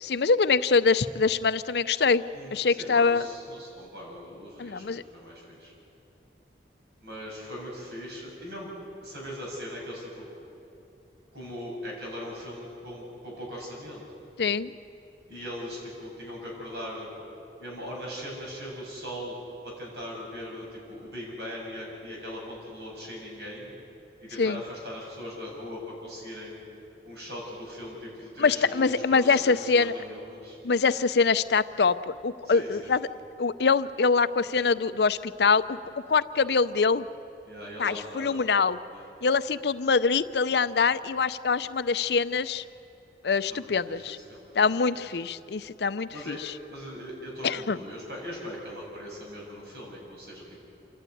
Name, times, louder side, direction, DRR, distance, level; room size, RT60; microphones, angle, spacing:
voice 1, 0.0-2.2 2.5-3.2 4.6-5.0 14.4-14.7 24.4-24.6 28.4-29.9 30.6-33.1 33.4-35.8 36.1-37.1 37.8-38.8 39.2-42.6 43.2-44.2 44.5-46.4 47.4-47.8, left 4 dB, 75° left, 14 dB, 0.6 m, -24 dB
voice 2, 2.3-5.7 7.0-8.7 9.0-10.1 11.3-14.0 15.3-17.1 17.6-19.3 19.6-23.7 24.2-26.6 27.0-30.6 32.4-32.9 37.5-38.6 38.9-39.1 43.5-44.0 44.3-44.7 44.9-45.0 46.1-46.4 46.7-50.4, equal, 70° right, -2 dB, 6.8 m, -40 dB
28.0 x 12.0 x 9.3 m, 2.8 s
head